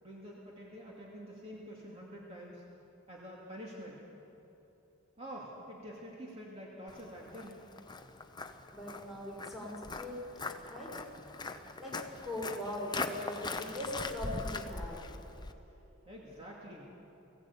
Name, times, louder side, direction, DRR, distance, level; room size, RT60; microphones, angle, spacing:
voice 1, 0.0-2.6 3.1-4.0 5.2-7.6 16.1-16.9, equal, 30° right, -4 dB, 2.5 m, -47 dB
Walk footsteps, 6.9-15.5, left 3 dB, 20° left, 0.8 m, -41 dB
voice 2, 8.7-10.2 10.7-10.9 11.8-12.0 12.2-15.0, left 1 dB, ahead, -3 dB, 4.7 m, -40 dB
20.0 x 16.0 x 8.6 m, 3.0 s
head